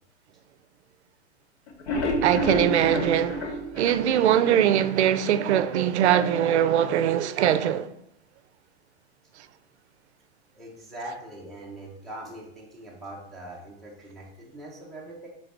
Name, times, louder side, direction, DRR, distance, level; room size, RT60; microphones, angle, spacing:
sound 1, 1.7-4.9 5.3-5.4 5.7-5.8 6.2-6.3, equal, 85° left, 1.0 m, -29 dB
voice 1, 2.2-7.9, right 10 dB, 80° right, 0.5 m, -22 dB
voice 2, 10.5-15.3, right 1 dB, ahead, 0.3 m, -41 dB
3.9 x 3.2 x 3.3 m
hypercardioid pair, 135°, 34 cm